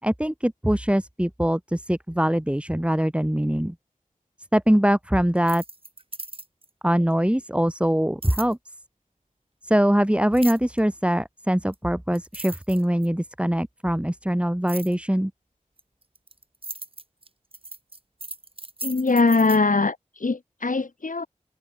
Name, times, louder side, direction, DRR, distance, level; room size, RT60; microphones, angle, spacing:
voice 1, 0.0-3.7 4.5-5.6 6.8-8.6 9.6-15.3, equal, 10° right, 4.1 m, -22 dB
sound 1, 5.4-6.7 8.2-8.5 10.3-10.8 11.7-11.8 12.1-13.2 14.7-14.9 15.8-19.6, right 2 dB, 40° right, 3.8 m, -37 dB
voice 2, 18.8-21.3, left 3 dB, 70° left, 4.5 m, -22 dB
wide cardioid pair, 60°, 14 cm